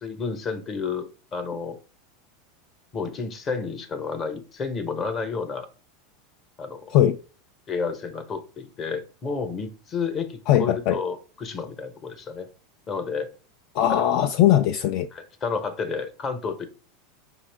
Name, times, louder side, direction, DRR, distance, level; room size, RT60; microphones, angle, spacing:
voice 1, 0.0-1.8 2.9-5.7 6.6-7.0 7.7-12.5 12.9-13.3 13.8-14.0 15.1-16.7, left 5 dB, 25° left, 0.8 m, -31 dB
voice 2, 10.5-11.0 13.7-15.1, left 11 dB, 50° left, 0.3 m, -20 dB
5.5 x 2.3 x 3.3 m
supercardioid pair, 145°, 0 cm